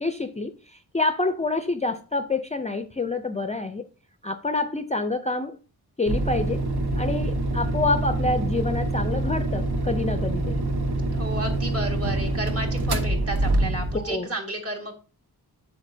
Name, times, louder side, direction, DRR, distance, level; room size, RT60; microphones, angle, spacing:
voice 1, 0.0-3.8 4.2-5.6 6.0-6.6 7.0-10.6 13.9-14.3, left 3 dB, 20° left, 8 dB, 0.4 m, -27 dB
sound 1, 6.1-14.1, right 2 dB, 75° right, 1.1 m, -25 dB
voice 2, 11.2-14.9, right 1 dB, 35° right, 2 dB, 1.8 m, -32 dB
8.2 x 6.7 x 2.7 m, 0.37 s
wide cardioid pair, 105°, 39 cm